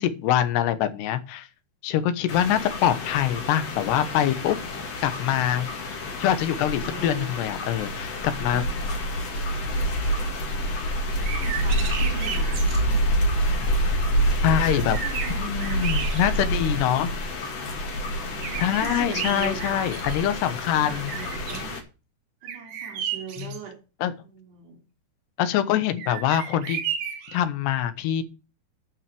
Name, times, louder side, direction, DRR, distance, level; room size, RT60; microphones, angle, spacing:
voice 1, 0.0-1.5 1.8-4.6 5.0-5.7 6.2-8.6 14.4-15.0 15.4-17.1 18.6-21.1 23.4-23.5 24.0-24.1 25.4-26.8 27.3-28.2, left 11 dB, 90° left, 11 dB, 3.3 m, -24 dB
voice 2, 1.9-2.6 6.5-7.3 8.3-8.8 11.0-13.1 14.3-16.7 18.0-20.0 20.8-21.8 22.4-23.8 24.2-24.8, right 6 dB, 85° right, 2 dB, 5.7 m, -41 dB
sound 1, 2.3-21.8, equal, 45° left, 2.9 m, -27 dB
sound 2, 11.1-12.8 14.2-14.3 14.7-16.6 17.1-17.2 18.4-20.5 20.8-21.7 22.4-23.6 26.0-27.4, right 8 dB, 60° right, 2.9 m, -33 dB
12.0 x 5.9 x 6.9 m, 0.31 s
omnidirectional pair, 4.7 m